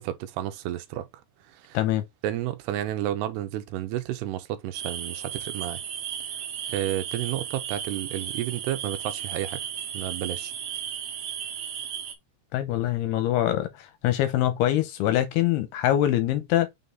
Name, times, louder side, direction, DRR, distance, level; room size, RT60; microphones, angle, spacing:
voice 1, 0.0-1.8 2.2-5.8 6.7-9.6 9.9-10.5, right 13 dB, 85° right, 2.7 m, -31 dB
sound 1, 4.7-12.2, right 9 dB, 70° right, 2.5 m, -35 dB
voice 2, 12.5-16.7, left 13 dB, 85° left, 2.7 m, -24 dB
6.2 x 4.0 x 3.8 m
omnidirectional pair, 4.8 m